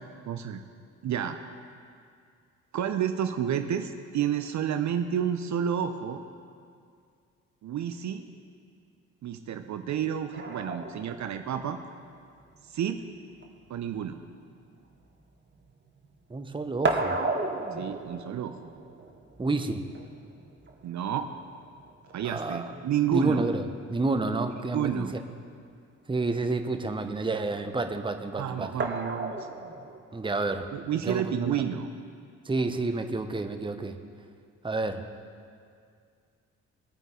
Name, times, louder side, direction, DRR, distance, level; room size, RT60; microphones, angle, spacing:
voice 1, 0.3-0.6 1.0-1.4 2.7-6.2 7.6-8.3 9.2-11.8 12.6-13.0 13.7-14.2 17.8-18.6 20.8-21.3 22.1-23.4 24.7-25.1 28.4-29.5 30.7-31.9, right 9 dB, 45° right, 8 dB, 0.8 m, -30 dB
sound 1, 10.3-16.1 16.3-23.4 24.8-24.9 25.2-25.3 28.8-30.0, right 2 dB, 30° right, 1.5 m, -35 dB
voice 2, 16.3-17.2 19.4-19.8 22.2-22.7 23.1-25.1 26.1-28.7 30.1-30.7 31.0-31.6 32.4-34.0 34.6-35.0, right 3 dB, 15° right, 7 dB, 0.9 m, -29 dB
20.0 x 9.0 x 3.9 m, 2.3 s
hypercardioid pair, 45°, 38 cm